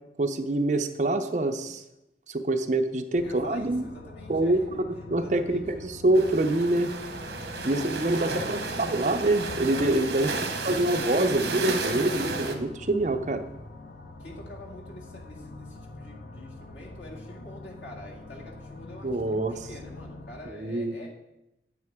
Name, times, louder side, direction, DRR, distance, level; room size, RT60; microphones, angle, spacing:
voice 1, 0.2-1.8 2.3-3.8 4.3-4.6 4.9-6.9 7.6-8.6 8.9-10.3 10.6-13.4 19.0-19.7 20.5-21.0, right 2 dB, 45° right, 7 dB, 0.6 m, -25 dB
sound 1, 3.1-20.4, left 2 dB, 60° left, 0.8 m, -44 dB
voice 2, 3.2-4.8 5.2-5.8 7.6-9.1 10.3-10.9 14.2-21.1, left 1 dB, 90° left, -3 dB, 2.2 m, -45 dB
sound 2, 6.1-12.5, right 3 dB, 65° right, 1.1 m, -33 dB
9.5 x 8.0 x 3.6 m, 0.91 s
head